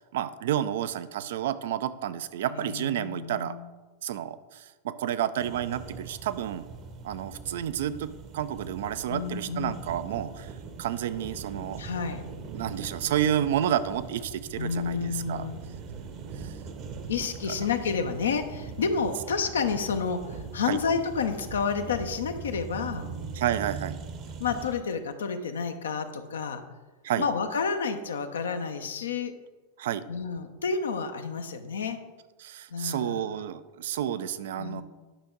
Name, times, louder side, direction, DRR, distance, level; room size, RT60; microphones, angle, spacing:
voice 1, 0.0-3.6 4.0-6.7 7.0-10.5 10.8-11.8 12.5-15.5 16.3-16.6 20.6-20.8 23.3-24.0 27.0-27.2 29.8-30.0 32.4-34.8, right 10 dB, 65° right, 14 dB, 0.5 m, -30 dB
voice 2, 2.5-3.7 9.1-9.8 11.8-12.2 14.6-15.6 17.1-23.1 24.4-26.6 27.2-29.3 30.1-32.0 32.7-33.2 34.5-34.8, left 5 dB, 75° left, 7 dB, 0.8 m, -30 dB
sound 1, 5.4-24.7, right 5 dB, 40° right, 0.9 m, -41 dB
10.0 x 5.9 x 3.8 m, 1.2 s
figure-of-eight pair, 90°, 0 cm